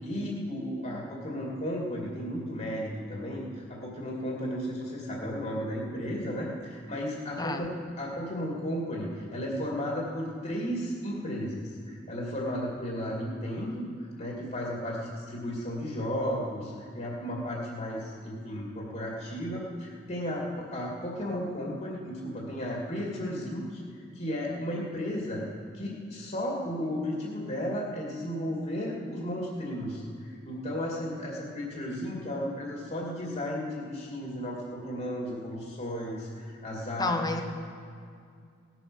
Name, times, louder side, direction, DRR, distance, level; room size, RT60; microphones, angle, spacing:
voice 1, 0.0-23.8 24.1-25.4 25.7-37.2, equal, 45° left, -3 dB, 2.4 m, -34 dB
voice 2, 37.0-37.4, left 2 dB, 20° left, 6 dB, 1.0 m, -29 dB
18.0 x 9.2 x 6.3 m, 2.3 s
head